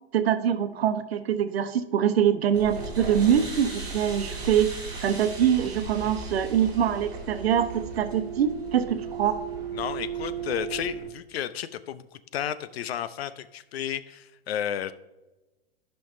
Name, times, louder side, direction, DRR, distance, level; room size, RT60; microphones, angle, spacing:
voice 1, 0.1-4.7 5.0-9.4, right 9 dB, 80° right, 9 dB, 1.0 m, -24 dB
sound 1, 2.5-11.0, right 5 dB, 15° right, 2.4 m, -36 dB
sound 2, 2.7-8.1, right 3 dB, 40° right, 2.2 m, -42 dB
voice 2, 9.7-14.9, left 10 dB, 80° left, 13 dB, 0.7 m, -32 dB
13.5 x 5.7 x 2.7 m, 1.1 s
hypercardioid pair, 155°, 30 cm